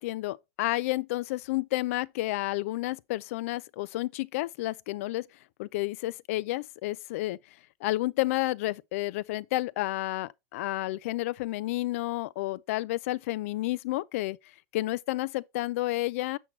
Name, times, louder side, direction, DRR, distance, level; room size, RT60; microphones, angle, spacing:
voice 1, 0.0-5.3 5.6-7.4 7.8-14.4 14.7-16.4, left 18 dB, 55° left, 0.4 m, -31 dB
7.4 x 6.3 x 3.1 m
supercardioid pair, 170°, 9 cm